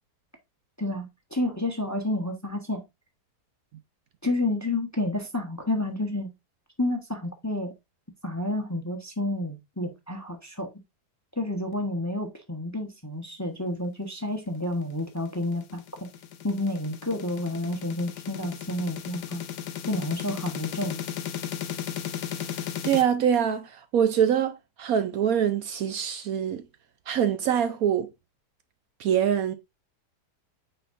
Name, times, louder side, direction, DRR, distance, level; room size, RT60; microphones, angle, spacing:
voice 1, 0.8-2.8 4.2-6.3 6.8-7.7 8.2-10.7 11.4-15.8 16.4-19.4 19.9-21.0, left 1 dB, 15° left, 0.9 m, -30 dB
sound 1, 14.9-23.0, left 10 dB, 85° left, 1.3 m, -36 dB
voice 2, 22.8-26.6 27.1-28.1 29.0-29.5, right 9 dB, 65° right, 1.0 m, -24 dB
8.8 x 4.6 x 2.6 m
omnidirectional pair, 1.7 m